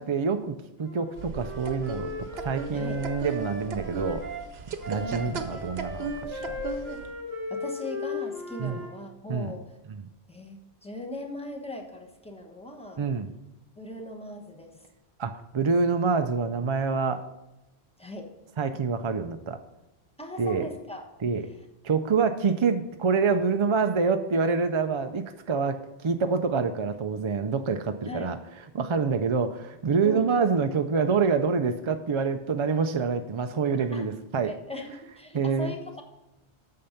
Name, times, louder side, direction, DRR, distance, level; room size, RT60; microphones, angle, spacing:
voice 1, 0.0-4.2 4.9-6.5 8.6-8.8 9.3-9.5 9.9-10.0 13.0-13.3 15.2-17.2 18.6-19.6 20.4-20.7 21.2-21.5 21.8-28.3 28.7-34.5 35.3-35.7, right 5 dB, 45° right, 7 dB, 0.4 m, -26 dB
Wind instrument woodwind instrument, 0.8-4.4 4.8-8.9, left 2 dB, 75° left, 3.9 m, -37 dB
sound 1, 1.2-7.1, right 4 dB, 80° right, 1.1 m, -37 dB
voice 2, 5.0-5.7 7.5-9.8 10.3-13.0 13.8-14.7 18.0-18.3 20.2-21.1 28.0-28.4 30.0-30.4 33.9-34.1 34.4-36.0, left 1 dB, 5° left, 3 dB, 1.1 m, -39 dB
8.7 x 6.6 x 5.7 m, 0.95 s
omnidirectional pair, 1.0 m